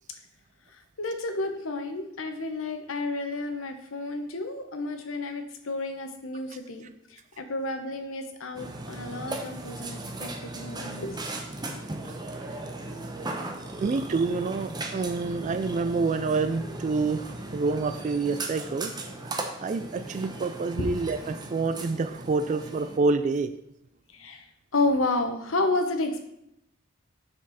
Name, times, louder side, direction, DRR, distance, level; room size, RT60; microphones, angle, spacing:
voice 1, 0.7-11.3 20.8-20.9 24.1-24.4 24.7-26.2, left 2 dB, 80° left, 5 dB, 1.0 m, -31 dB
Burping eructation, 8.5-23.0, right 2 dB, 20° right, 0.7 m, -37 dB
voice 2, 13.8-18.9 19.6-23.6, right 4 dB, 35° right, 11 dB, 0.3 m, -27 dB
7.4 x 6.1 x 4.1 m, 0.79 s
head